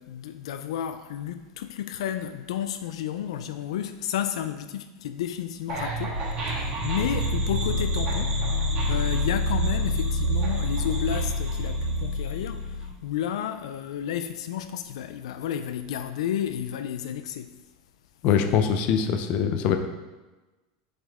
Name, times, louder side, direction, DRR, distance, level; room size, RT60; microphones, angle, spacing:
voice 1, 0.0-6.2 6.5-8.4 8.9-17.6, left 10 dB, 90° left, 0.4 m, -32 dB
sound 1, 5.7-12.9, equal, 35° right, 1.7 m, -27 dB
voice 2, 18.2-19.8, left 7 dB, 45° left, 0.7 m, -23 dB
7.3 x 5.3 x 3.5 m
supercardioid pair, 155°, 3 cm